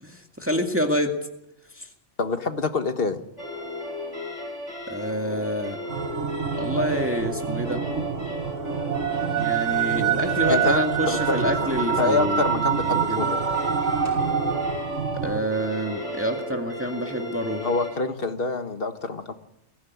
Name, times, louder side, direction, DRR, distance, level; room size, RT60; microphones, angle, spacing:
voice 1, 0.0-1.1 1.8-1.9 4.9-5.8 6.6-7.8 9.3-12.4 12.9-13.3 15.2-17.7, equal, 10° right, 3 dB, 2.0 m, -27 dB
voice 2, 2.2-3.2 10.5-10.8 11.1-13.4 17.6-19.3, left 3 dB, 50° left, 8 dB, 1.7 m, -26 dB
sound 1, 3.4-17.9, left 1 dB, 70° left, 7.7 m, -34 dB
sound 2, 5.9-15.4, right 8 dB, 85° right, 1.7 m, -26 dB
22.5 x 15.0 x 9.5 m, 0.86 s
omnidirectional pair, 1.2 m